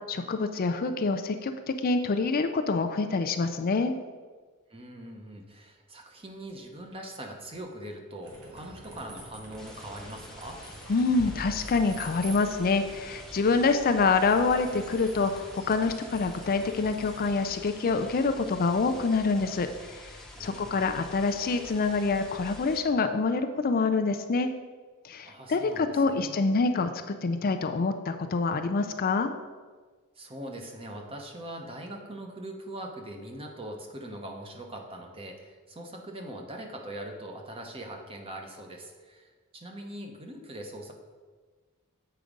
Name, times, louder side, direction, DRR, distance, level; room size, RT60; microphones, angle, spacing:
voice 1, 0.1-3.9 10.9-20.1 20.4-24.5 25.0-29.3, left 4 dB, 40° left, 7 dB, 0.4 m, -26 dB
voice 2, 4.7-10.6 20.3-21.0 25.3-26.5 30.2-40.9, right 1 dB, 25° right, 2 dB, 1.0 m, -42 dB
sound 1, 8.2-17.3, right 1 dB, 90° right, 2.0 m, -48 dB
sound 2, 9.6-22.8, left 1 dB, ahead, 0.9 m, -46 dB
7.9 x 4.8 x 5.1 m, 1.4 s
head